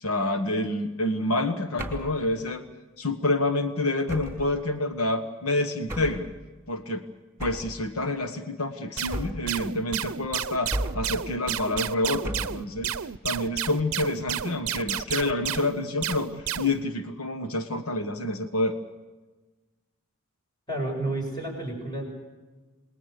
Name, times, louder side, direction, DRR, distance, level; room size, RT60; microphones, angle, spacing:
voice 1, 0.0-2.6 3.0-6.3 6.7-7.0 7.4-12.9 13.2-18.8, left 2 dB, 85° left, 8 dB, 1.4 m, -28 dB
sound 1, 1.8-2.2 4.1-4.5 5.9-6.3 7.4-7.8 9.1-9.6 10.7-11.2 12.2-12.7, right 1 dB, 15° right, 3.1 m, -33 dB
sound 2, 9.0-16.8, right 9 dB, 75° right, 0.6 m, -32 dB
voice 2, 20.7-22.1, right 2 dB, 20° left, 1 dB, 7.3 m, -30 dB
28.0 x 20.5 x 6.7 m, 1.2 s
head